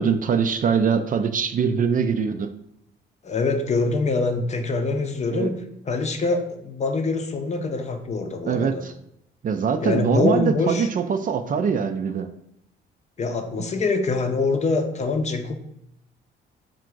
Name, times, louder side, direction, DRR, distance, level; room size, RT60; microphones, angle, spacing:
voice 1, 0.0-2.5 5.3-5.5 8.4-8.9 9.4-12.3, right 6 dB, 45° right, 8 dB, 0.4 m, -23 dB
voice 2, 3.2-5.6 5.9-8.9 9.8-10.9 13.2-15.5, left 3 dB, 35° left, 6 dB, 0.6 m, -24 dB
3.6 x 2.5 x 4.4 m, 0.76 s
cardioid pair, 90°, 20 cm